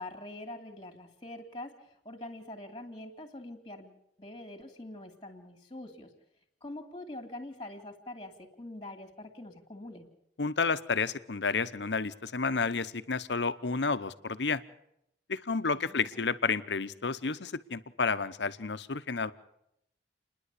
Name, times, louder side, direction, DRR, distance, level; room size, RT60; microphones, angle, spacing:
voice 1, 0.0-6.1 6.6-10.1 15.7-16.3, left 1 dB, 25° left, 3 dB, 2.4 m, -44 dB
voice 2, 10.4-14.6 15.3-19.3, left 4 dB, 85° left, 13 dB, 0.9 m, -31 dB
29.5 x 10.5 x 8.4 m, 0.79 s
head